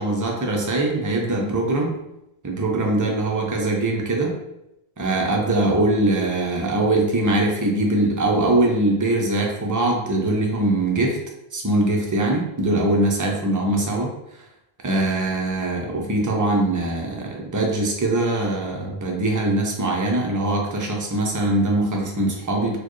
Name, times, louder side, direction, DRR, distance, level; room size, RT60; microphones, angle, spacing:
voice 1, 0.0-2.0 2.4-4.4 5.0-11.2 11.5-14.1 14.8-22.8, right 2 dB, 25° right, 0 dB, 0.4 m, -22 dB
4.3 x 2.3 x 3.1 m, 0.89 s
omnidirectional pair, 1.1 m